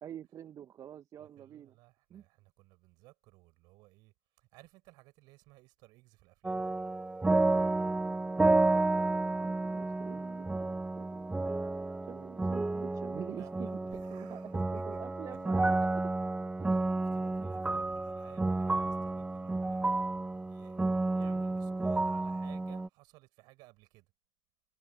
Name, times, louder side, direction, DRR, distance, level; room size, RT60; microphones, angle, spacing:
voice 1, 0.0-1.7 2.1-2.2 8.9-11.3 12.1-16.1 21.2-21.8, right 10 dB, 45° right, 1.6 m, -47 dB
voice 2, 1.2-6.7 13.3-15.1 15.3-15.4 17.1-19.9 20.4-24.1, right 22 dB, 60° right, 6.7 m, -58 dB
sound 1, 6.4-22.9, right 2 dB, 10° right, 0.8 m, -31 dB
figure-of-eight pair, 60°, 8 cm